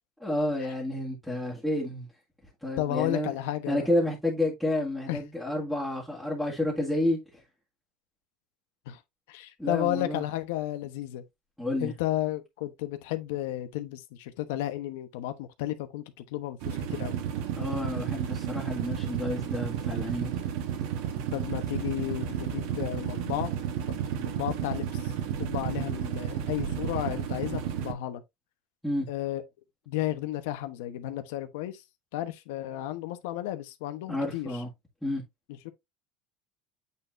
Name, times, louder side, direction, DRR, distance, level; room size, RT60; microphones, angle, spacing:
voice 1, 0.2-2.1 2.6-3.3 3.7-7.4 9.6-10.2 11.6-11.9 17.6-20.3 28.8-29.1 34.1-34.7 35.0-35.2, left 1 dB, 5° left, 1.9 m, -30 dB
voice 2, 2.8-3.9 5.1-5.2 8.9-9.0 9.3-11.2 11.8-17.2 21.3-23.5 23.9-28.2 29.1-29.4 29.9-31.8 32.1-34.5 35.6-35.7, left 14 dB, 90° left, 1.1 m, -33 dB
sound 1, 16.6-27.9, right 9 dB, 70° right, 1.4 m, -32 dB
8.6 x 4.1 x 2.7 m
cardioid pair, 145°, 0 cm